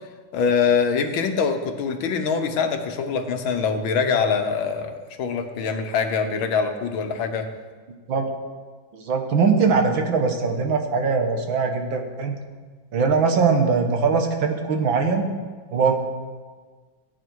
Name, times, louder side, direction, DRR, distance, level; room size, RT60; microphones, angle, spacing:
voice 1, 0.3-7.5, left 5 dB, 80° left, 6 dB, 1.8 m, -24 dB
voice 2, 8.9-12.3 12.9-15.3 15.7-16.0, right 5 dB, 70° right, 4 dB, 2.0 m, -21 dB
16.0 x 9.2 x 4.7 m, 1.5 s
omnidirectional pair, 2.2 m